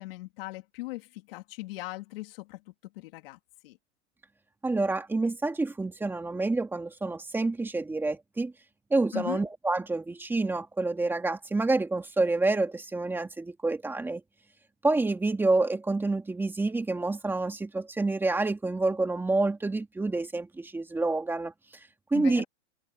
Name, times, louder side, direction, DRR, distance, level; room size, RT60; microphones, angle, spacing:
voice 1, 0.0-3.8 9.1-9.5 22.1-22.4, left 20 dB, 50° left, 3.1 m, -39 dB
voice 2, 4.6-8.5 8.9-14.2 14.8-21.5 22.1-22.4, right 2 dB, 5° right, 1.9 m, -28 dB
hypercardioid pair, 150°, 36 cm